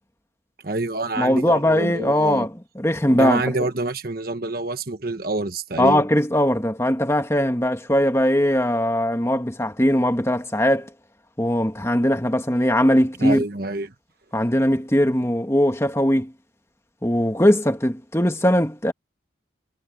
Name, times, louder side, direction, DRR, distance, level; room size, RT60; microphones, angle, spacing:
voice 1, 0.6-2.5 3.1-6.0 13.2-13.9, right 2 dB, 50° right, 1.3 m, -27 dB
voice 2, 1.2-2.5 2.8-3.4 5.8-10.9 11.4-13.4 14.3-16.3 17.0-18.9, equal, 15° left, 1.8 m, -20 dB
head